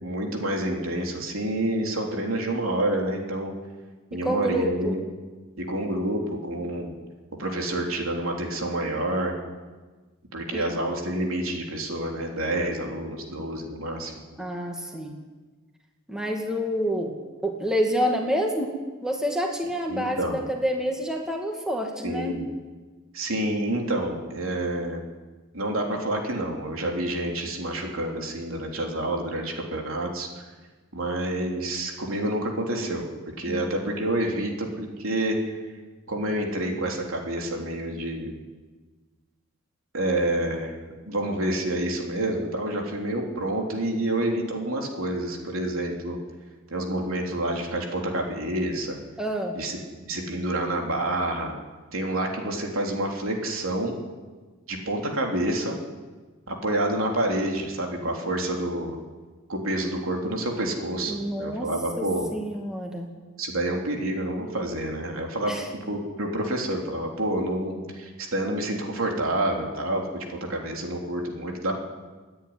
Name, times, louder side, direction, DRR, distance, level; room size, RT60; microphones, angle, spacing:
voice 1, 0.0-3.5 4.1-5.0 5.6-7.0 7.4-9.3 10.3-14.1 19.9-20.4 22.0-22.4 23.1-25.0 25.5-30.4 30.9-35.5 36.1-38.3 39.9-40.7 41.1-46.2 46.7-49.0 49.6-51.5 51.9-54.0 54.7-55.8 56.5-59.0 59.5-62.3 63.4-65.5 65.9-71.8, right 1 dB, 75° right, 1 dB, 3.5 m, -28 dB
voice 2, 4.1-4.9 10.5-10.7 14.4-15.1 16.1-17.1 17.4-18.7 19.0-22.4 33.5-33.6 49.2-49.5 61.1-61.7 62.0-62.1 62.3-63.1 65.5-65.7, equal, 5° right, 1 dB, 2.2 m, -28 dB
28.0 x 10.5 x 9.7 m, 1.3 s
head